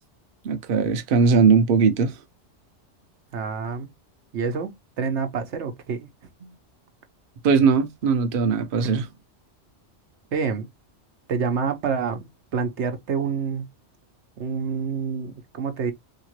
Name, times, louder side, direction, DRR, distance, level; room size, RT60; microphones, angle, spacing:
voice 1, 0.4-2.2 7.4-9.1, right 5 dB, 55° right, 0.8 m, -19 dB
voice 2, 3.3-3.9 4.3-6.1 10.3-10.7 11.3-13.7 14.4-15.9, right 6 dB, 75° right, 1.0 m, -27 dB
3.6 x 2.8 x 2.9 m
omnidirectional pair, 1.2 m